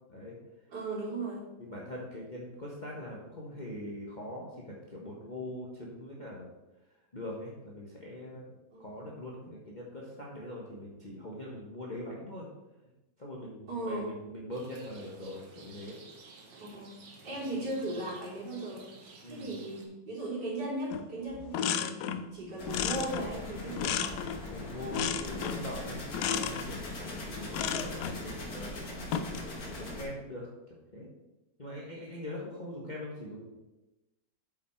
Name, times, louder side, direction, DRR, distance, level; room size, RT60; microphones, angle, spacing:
voice 1, 0.7-1.5 8.7-9.1 13.7-14.1 16.5-17.0 17.2-18.9 19.2-24.2, right 2 dB, 65° right, -7 dB, 4.0 m, -37 dB
voice 2, 1.6-6.5 7.1-12.5 13.2-16.0 19.2-19.5 24.5-28.7 29.3-29.4 29.7-31.1 31.6-33.5, left 1 dB, 30° left, -4 dB, 1.3 m, -42 dB
Rain, 14.5-19.8, right 4 dB, 90° right, 2.0 m, -53 dB
sound 1, 20.9-21.1 21.3-22.3 22.7-24.5 24.9-25.7 26.1-26.7 27.5-28.2 29.0-29.5, left 8 dB, 75° left, 1.1 m, -33 dB
sound 2, 22.6-30.0, left 2 dB, 55° left, 2.1 m, -41 dB
8.2 x 6.5 x 4.5 m, 1.0 s
omnidirectional pair, 2.0 m